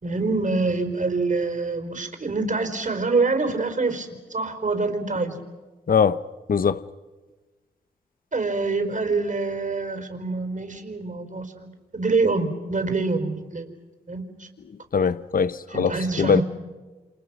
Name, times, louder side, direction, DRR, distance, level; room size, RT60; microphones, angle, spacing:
voice 1, 0.0-5.4 8.3-13.7 14.1-14.5 15.7-16.4, right 3 dB, 50° right, 4.4 m, -26 dB
voice 2, 5.9-6.2 6.5-6.8 14.9-16.4, left 6 dB, 60° left, 0.8 m, -21 dB
29.5 x 28.0 x 6.1 m
cardioid pair, 45°, 17 cm